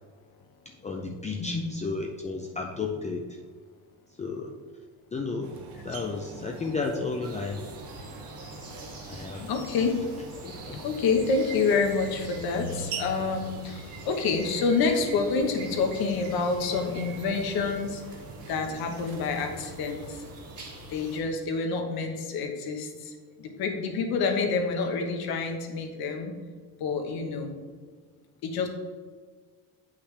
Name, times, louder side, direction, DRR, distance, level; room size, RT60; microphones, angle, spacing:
voice 1, 0.8-3.4 4.2-4.5 5.1-5.6 5.8-7.6 9.1-9.4 10.4-10.8, left 4 dB, 20° left, 1 dB, 0.4 m, -33 dB
sound 1, 5.4-20.3, right 5 dB, 70° right, 1.0 m, -44 dB
sound 2, 7.2-21.2, equal, 40° right, 1.7 m, -44 dB
voice 2, 9.4-9.9 10.8-18.2 18.5-20.2 20.9-23.1 23.4-26.3 26.8-27.6 28.4-28.7, left 4 dB, 75° left, 4 dB, 1.2 m, -28 dB
8.1 x 5.6 x 3.3 m, 1.5 s
cardioid pair, 145°, 37 cm